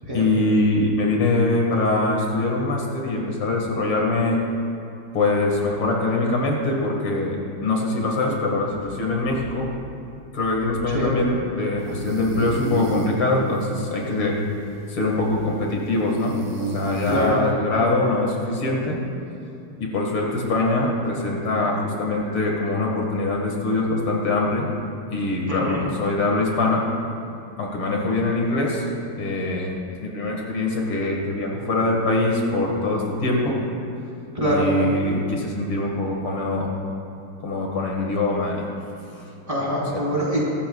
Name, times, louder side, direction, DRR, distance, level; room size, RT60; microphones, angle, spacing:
voice 1, 0.1-4.4 5.1-9.7 10.3-14.4 14.9-19.0 19.8-24.7 25.1-26.9 27.6-28.9 29.2-33.6 34.4-36.7 37.4-38.7 39.2-39.3 39.9-40.0, left 2 dB, 80° left, -1 dB, 2.6 m, -23 dB
sound 1, 11.8-17.5, right 1 dB, 50° right, 2.1 m, -33 dB
voice 2, 17.0-17.4 17.7-18.2 25.5-25.8 34.3-34.7 39.5-40.4, equal, 15° right, -7 dB, 3.7 m, -24 dB
23.5 x 13.0 x 2.3 m, 2.6 s
omnidirectional pair, 2.3 m